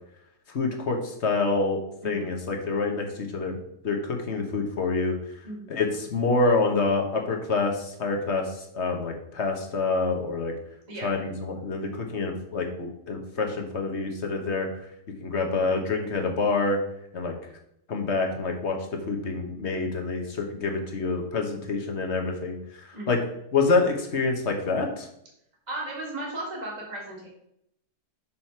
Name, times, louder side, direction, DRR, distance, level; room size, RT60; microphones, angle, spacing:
voice 1, 0.5-3.6 3.8-5.2 5.7-10.5 11.0-14.7 15.2-16.8 17.1-17.3 17.9-18.8 19.1-22.6 23.1-23.2 23.5-25.1, left 3 dB, 45° left, 3 dB, 1.2 m, -27 dB
voice 2, 25.7-27.3, right 2 dB, 25° right, -3 dB, 2.1 m, -35 dB
6.1 x 5.7 x 4.5 m, 0.75 s
omnidirectional pair, 1.8 m